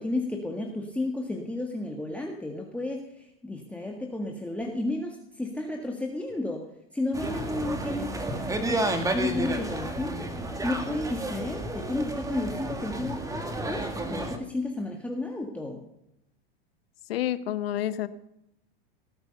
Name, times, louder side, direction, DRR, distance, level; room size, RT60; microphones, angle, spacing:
voice 1, 0.0-6.6 6.9-10.3 10.6-13.2 13.7-15.8, left 2 dB, 5° left, 1 dB, 1.7 m, -32 dB
sound 1, 7.1-14.4, right 2 dB, 10° right, 2.0 m, -31 dB
voice 2, 17.1-18.1, left 12 dB, 80° left, 14 dB, 1.2 m, -29 dB
18.5 x 8.8 x 6.9 m, 0.81 s
hypercardioid pair, 120°, 30 cm